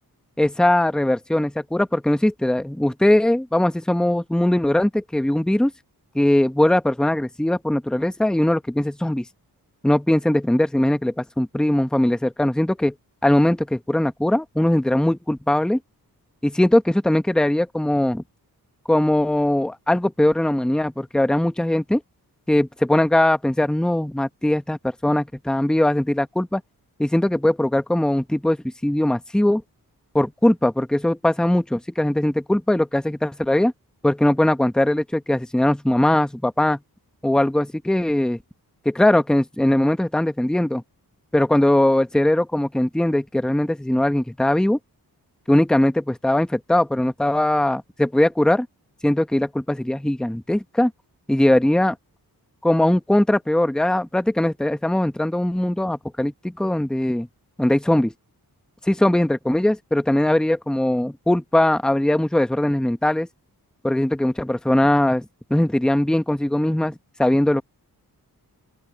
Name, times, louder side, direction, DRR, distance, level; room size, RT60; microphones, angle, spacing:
voice 1, 0.4-5.7 6.1-9.2 9.8-12.9 13.2-15.8 16.4-18.2 18.9-22.0 22.5-26.6 27.0-28.6 28.8-29.6 30.1-33.7 34.0-36.8 37.2-38.4 38.8-40.8 41.3-44.8 45.5-48.7 49.0-50.9 51.3-52.0 52.6-57.3 57.6-58.1 58.8-63.3 63.8-67.6, left 1 dB, ahead, 0.9 m, -20 dB
open air
wide cardioid pair, 165°, 37 cm